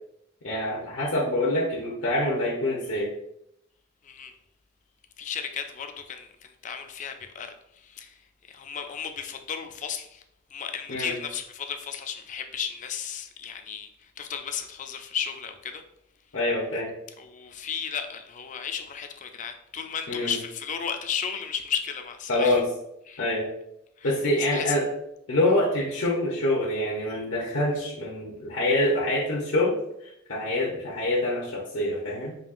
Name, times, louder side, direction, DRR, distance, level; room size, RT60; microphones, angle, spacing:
voice 1, 0.4-3.1 10.9-11.2 16.3-16.9 20.1-20.3 22.3-22.6 23.2-23.5 24.0-24.9 25.3-29.7 30.3-32.4, left 1 dB, 75° left, -3 dB, 0.8 m, -25 dB
voice 2, 5.2-7.5 7.8-8.1 8.5-10.2 10.5-13.9 14.2-15.8 17.2-22.6 23.1-23.2 24.0-24.1 24.5-24.6, left 7 dB, 40° left, 6 dB, 0.4 m, -34 dB
5.1 x 2.8 x 2.5 m, 0.79 s
head